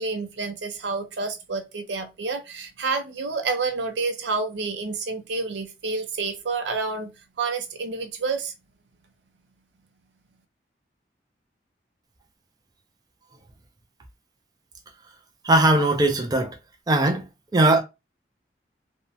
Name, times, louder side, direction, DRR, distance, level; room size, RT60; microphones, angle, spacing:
voice 1, 0.0-7.1 7.4-8.5, right 4 dB, 90° right, 0.6 m, -29 dB
voice 2, 15.4-16.6 16.9-17.3 17.5-17.8, right 2 dB, 20° right, 0.3 m, -19 dB
2.6 x 2.1 x 2.6 m
head